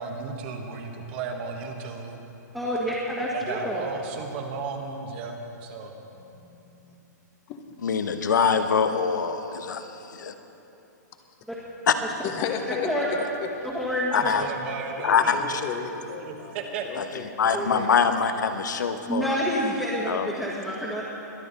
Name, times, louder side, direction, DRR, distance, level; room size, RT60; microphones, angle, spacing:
voice 1, 0.0-2.2 3.3-5.9 14.2-15.7 16.2-16.8, right 5 dB, 35° right, 3 dB, 1.5 m, -35 dB
voice 2, 2.5-3.8 12.8-13.1 13.6-14.3 17.5-17.7 19.1-21.0, equal, ahead, -8 dB, 1.7 m, -28 dB
voice 3, 6.2-6.9 7.5-7.6 12.2-13.7 15.0-18.2, left 6 dB, 30° left, 5 dB, 1.1 m, -35 dB
voice 4, 7.8-10.3 11.9-12.0 14.1-14.5 15.0-15.6 17.0-17.1 17.4-19.4 20.1-20.3, left 6 dB, 80° left, 8 dB, 1.1 m, -24 dB
22.5 x 9.8 x 4.2 m, 2.9 s
hypercardioid pair, 155°, 10 cm